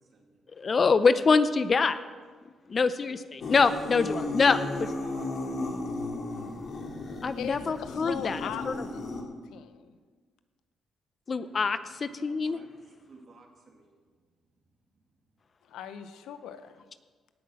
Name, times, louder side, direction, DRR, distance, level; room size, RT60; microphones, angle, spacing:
voice 1, 0.6-2.0 2.7-4.9 7.2-8.4 8.7-8.8 11.3-12.6, left 4 dB, 40° left, 13 dB, 0.5 m, -25 dB
sound 1, 3.4-9.2, left 2 dB, 55° left, 2.3 m, -35 dB
voice 2, 4.8-6.0 12.2-14.0, right 3 dB, 50° right, 2 dB, 2.3 m, -51 dB
voice 3, 7.4-9.0 9.5-10.0 15.7-16.8, left 8 dB, 85° left, 11 dB, 0.7 m, -39 dB
18.0 x 6.1 x 6.2 m, 1.5 s
cardioid pair, 90°, 0 cm